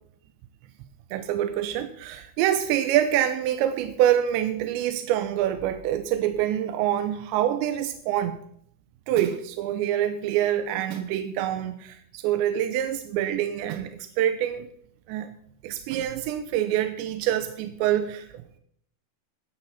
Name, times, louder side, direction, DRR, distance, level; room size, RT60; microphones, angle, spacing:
voice 1, 1.1-8.4 9.1-14.7 15.1-15.3 15.6-18.3, right 11 dB, 80° right, 9 dB, 2.7 m, -26 dB
15.0 x 12.0 x 4.2 m, 0.67 s
omnidirectional pair, 5.7 m